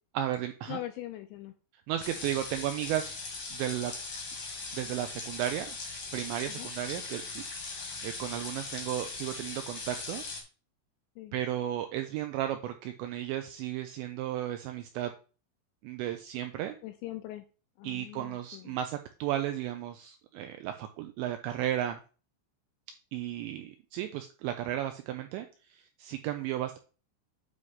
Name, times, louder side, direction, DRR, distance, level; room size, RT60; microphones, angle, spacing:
voice 1, 0.2-0.8 1.9-3.1 3.5-3.9 4.7-5.8 6.1-7.4 8.0-10.2 11.3-15.1 15.8-16.8 17.8-22.0 23.1-26.8, right 12 dB, 90° right, 6 dB, 2.6 m, -34 dB
voice 2, 0.7-1.5 6.5-6.7 11.2-11.3 16.8-17.4 17.8-18.8, left 13 dB, 85° left, 8 dB, 2.7 m, -41 dB
sound 1, 2.0-10.4, left 3 dB, 60° left, 1.5 m, -40 dB
9.4 x 3.2 x 5.5 m, 0.35 s
omnidirectional pair, 5.8 m